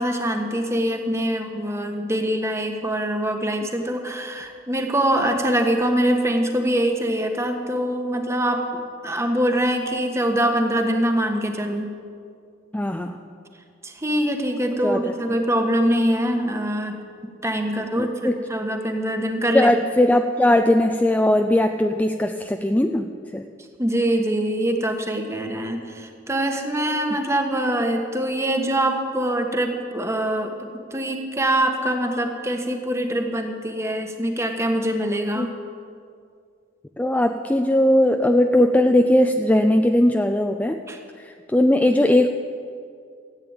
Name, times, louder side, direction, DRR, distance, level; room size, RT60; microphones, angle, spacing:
voice 1, 0.0-8.6 9.0-11.9 13.8-17.0 17.4-19.7 23.8-35.5 40.9-41.0, right 1 dB, 15° right, 4 dB, 1.3 m, -24 dB
voice 2, 12.7-13.2 14.8-15.4 18.0-18.4 19.5-23.4 35.3-35.5 37.0-40.8 41.2-42.3, left 1 dB, 10° left, 6 dB, 0.4 m, -19 dB
14.0 x 8.7 x 8.9 m, 2.3 s
head